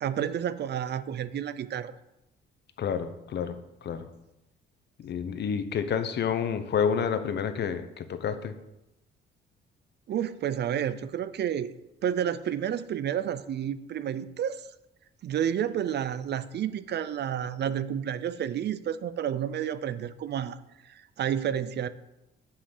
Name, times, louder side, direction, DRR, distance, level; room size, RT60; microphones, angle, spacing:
voice 1, 0.0-1.9 10.1-11.7 12.0-14.6 15.2-20.6 20.9-21.9, right 9 dB, 60° right, 14 dB, 0.6 m, -30 dB
voice 2, 2.8-3.6 3.8-4.1 5.0-8.5, left 7 dB, 60° left, 10 dB, 0.9 m, -29 dB
7.5 x 5.7 x 6.7 m, 0.93 s
cardioid pair, 90°, 20 cm